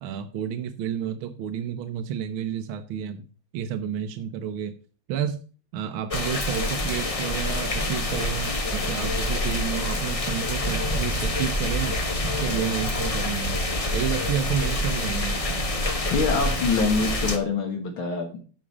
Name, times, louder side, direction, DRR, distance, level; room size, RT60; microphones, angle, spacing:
voice 1, 0.0-3.3 3.5-4.7 5.1-5.4 5.7-12.0 12.2-13.6 13.9-15.9, right 8 dB, 75° right, 8 dB, 1.5 m, -30 dB
sound 1, 6.1-17.4, left 1 dB, 40° left, 0.5 m, -27 dB
voice 2, 16.1-18.4, left 4 dB, 70° left, 4 dB, 2.2 m, -25 dB
9.9 x 5.0 x 6.0 m, 0.38 s
omnidirectional pair, 2.4 m